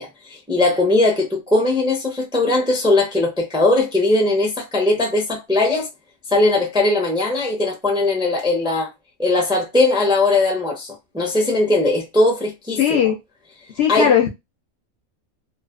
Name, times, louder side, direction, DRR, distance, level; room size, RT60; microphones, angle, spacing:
voice 1, 0.0-5.9 6.3-8.9 9.2-13.0 13.9-14.1, left 2 dB, 5° right, 0.4 m, -19 dB
voice 2, 12.8-13.2 13.8-14.3, left 8 dB, 60° left, 0.7 m, -17 dB
2.4 x 2.4 x 2.3 m
omnidirectional pair, 1.5 m